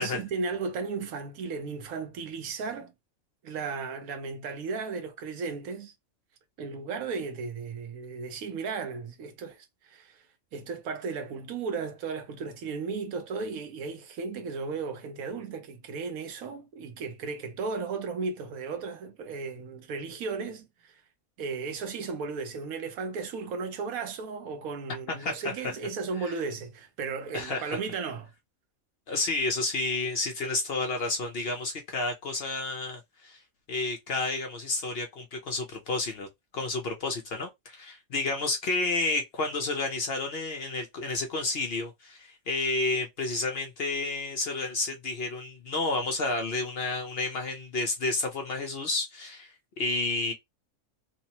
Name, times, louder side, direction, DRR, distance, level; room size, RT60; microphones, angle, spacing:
voice 1, 0.0-2.9 3.4-5.9 6.6-10.2 10.5-21.0 21.4-28.3, right 4 dB, 85° right, 1.2 m, -35 dB
voice 2, 27.3-27.8 29.1-33.4 33.7-36.3 36.5-50.3, left 3 dB, 55° left, 0.8 m, -30 dB
3.2 x 2.0 x 2.8 m
omnidirectional pair, 1.4 m